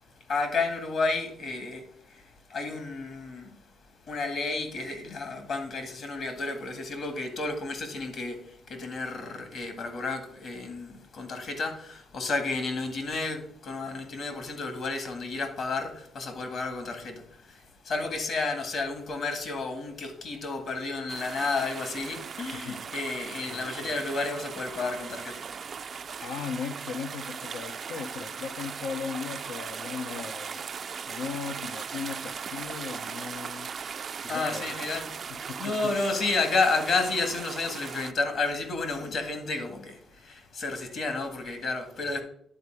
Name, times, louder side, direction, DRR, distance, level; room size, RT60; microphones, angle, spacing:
voice 1, 0.0-26.2 34.0-42.2, left 3 dB, 60° left, 1.8 m, -32 dB
sound 1, 21.1-38.1, right 6 dB, 50° right, 0.4 m, -38 dB
voice 2, 22.5-22.9 23.5-24.1 26.2-30.7 31.1-33.7 34.2-34.8 35.3-36.0, left 6 dB, 85° left, 0.6 m, -38 dB
10.0 x 4.2 x 4.6 m
cardioid pair, 90°, 0 cm